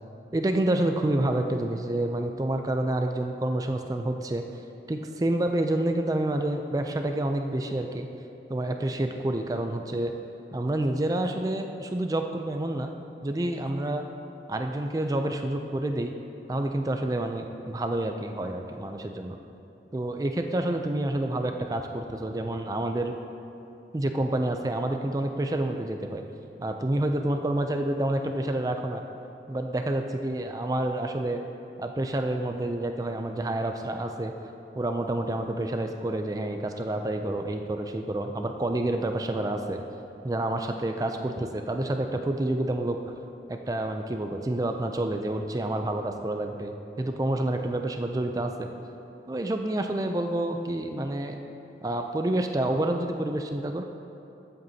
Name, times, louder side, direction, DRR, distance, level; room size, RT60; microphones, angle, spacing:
voice 1, 0.3-4.4 4.9-8.1 8.5-10.1 10.5-12.9 13.2-14.0 14.5-16.1 16.5-19.4 19.9-23.1 23.9-26.2 26.6-29.0 29.5-31.4 31.8-34.3 34.7-39.8 40.2-43.0 43.5-48.7 49.3-51.4 51.8-53.8, right 1 dB, 20° right, 5 dB, 0.4 m, -28 dB
14.5 x 7.9 x 2.8 m, 2.9 s
head